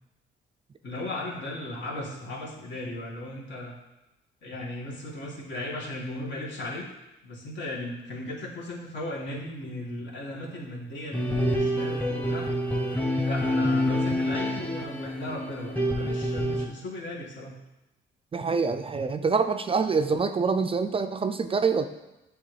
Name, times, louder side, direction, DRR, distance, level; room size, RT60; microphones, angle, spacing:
voice 1, 0.8-3.7 4.4-6.9 7.2-12.5 13.2-17.5, left 1 dB, 65° left, -3 dB, 1.7 m, -36 dB
sound 1, 11.1-16.7, equal, 10° left, 0.9 m, -27 dB
voice 2, 18.3-21.8, right 5 dB, 30° right, 8 dB, 0.3 m, -25 dB
8.5 x 3.4 x 3.3 m, 0.96 s
cardioid pair, 90°, 20 cm